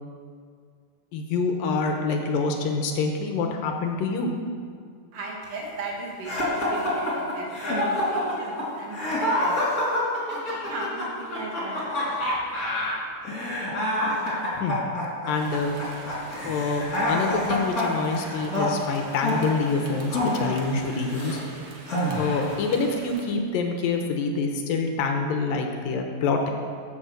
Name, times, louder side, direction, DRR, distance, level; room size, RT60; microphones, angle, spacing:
voice 1, 1.1-4.3 14.5-14.8 15.3-15.8 16.3-21.4 22.1-26.5, left 4 dB, 75° left, 3 dB, 2.5 m, -26 dB
voice 2, 5.1-9.6 10.3-11.9, right 2 dB, 60° right, -2 dB, 3.4 m, -37 dB
sound 1, 6.2-21.4 21.9-22.5, left 1 dB, 25° left, 3.3 m, -27 dB
Rain, 15.3-23.3, right 3 dB, 80° right, 3.4 m, -45 dB
14.5 x 7.3 x 6.3 m, 2.1 s
omnidirectional pair, 4.3 m